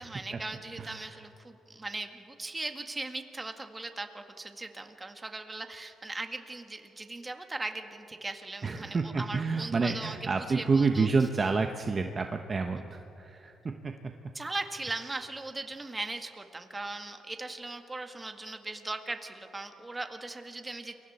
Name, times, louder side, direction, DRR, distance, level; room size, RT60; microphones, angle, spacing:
voice 1, 0.0-11.1 14.3-20.9, right 2 dB, 20° right, 6 dB, 1.8 m, -39 dB
voice 2, 8.6-13.5 13.8-13.9, right 4 dB, 35° right, 5 dB, 1.1 m, -28 dB
29.5 x 23.5 x 4.4 m, 3.0 s
cardioid pair, 90°, 0 cm